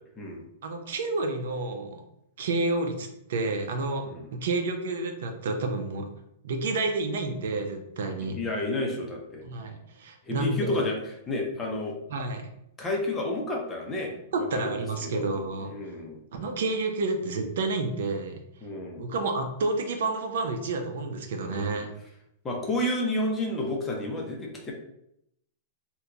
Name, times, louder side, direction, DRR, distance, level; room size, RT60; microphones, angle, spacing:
voice 1, 0.6-2.0 2.4-4.1 4.3-6.1 6.4-8.4 9.4-10.8 12.1-12.5 14.3-15.7 16.3-18.4 19.0-21.9, right 3 dB, 70° right, 4 dB, 0.6 m, -30 dB
voice 2, 8.3-9.4 10.3-11.0 11.3-12.0 12.8-14.8 15.0-15.3 15.6-16.2 18.6-19.1 21.5-21.8 22.4-24.7, left 1 dB, 15° left, 0 dB, 0.6 m, -31 dB
2.8 x 2.2 x 3.7 m, 0.77 s
supercardioid pair, 160°, 0 cm